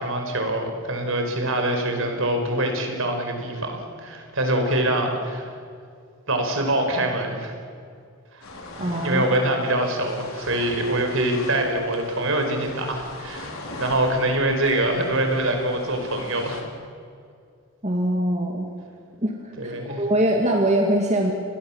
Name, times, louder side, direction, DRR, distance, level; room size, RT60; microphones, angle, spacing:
voice 1, 0.0-5.5 6.3-7.5 8.3-8.4 9.0-13.5 13.8-16.6 19.6-20.0, right 1 dB, 65° right, 4 dB, 5.1 m, -24 dB
sound 1, 8.4-16.6, left 2 dB, 75° left, 4.4 m, -40 dB
voice 2, 8.8-9.3 17.8-18.7 19.2-19.4 19.6-21.3, right 1 dB, 30° right, 1 dB, 2.3 m, -22 dB
29.5 x 21.0 x 7.4 m, 2.3 s
head